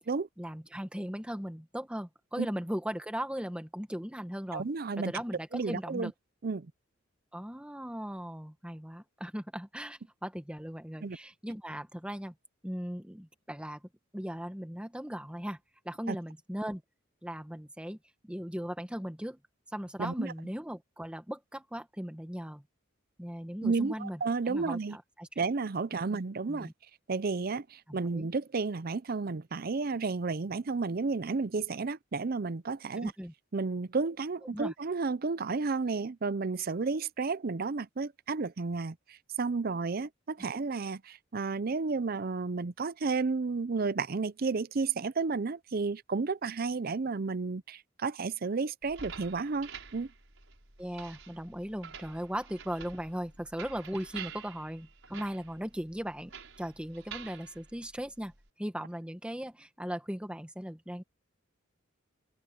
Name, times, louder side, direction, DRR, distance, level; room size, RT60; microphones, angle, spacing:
voice 1, 0.4-4.7 5.0-6.1 7.3-12.3 12.6-13.8 14.1-15.6 15.8-16.8 17.2-18.0 18.2-19.4 19.7-22.6 23.2-24.2 24.5-25.4 26.1-26.2 26.5-26.7 27.9-28.3 32.9-33.3 34.5-34.7 50.8-58.3 58.6-61.0, equal, 5° right, 1.2 m, -38 dB
voice 2, 4.5-5.1 5.5-6.1 6.4-6.7 11.0-11.2 16.1-16.2 20.0-20.3 23.6-25.0 25.4-26.7 27.1-33.1 33.5-50.1, right 4 dB, 50° right, 0.6 m, -32 dB
sound 1, 48.8-58.5, right 7 dB, 75° right, 5.9 m, -49 dB
open air
head